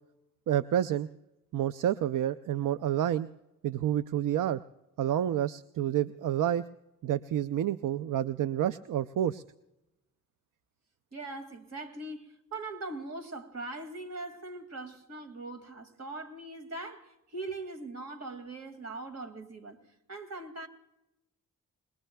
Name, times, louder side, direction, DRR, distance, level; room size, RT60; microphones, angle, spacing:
voice 1, 0.5-1.1 1.5-3.3 3.6-4.6 5.0-6.6 7.0-9.4, right 11 dB, 80° right, 0.5 m, -29 dB
voice 2, 11.1-20.7, right 2 dB, 55° right, 2.2 m, -41 dB
28.5 x 20.5 x 2.3 m
cardioid pair, 75°, 32 cm